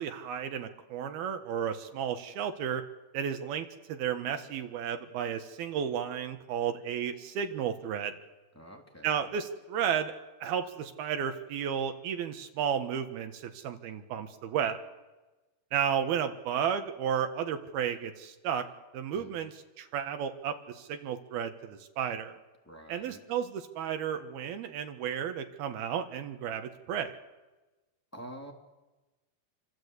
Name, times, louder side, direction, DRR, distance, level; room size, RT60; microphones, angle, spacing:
voice 1, 0.0-2.8 3.1-8.1 9.0-10.1 10.4-14.8 15.7-18.7 18.9-22.4 22.9-27.2, right 8 dB, 70° right, 7 dB, 3.3 m, -33 dB
voice 2, 8.5-9.2 19.1-19.5 22.7-23.2 28.1-28.5, right 1 dB, 5° left, 0 dB, 2.3 m, -47 dB
28.0 x 25.5 x 8.3 m, 1.1 s
omnidirectional pair, 4.7 m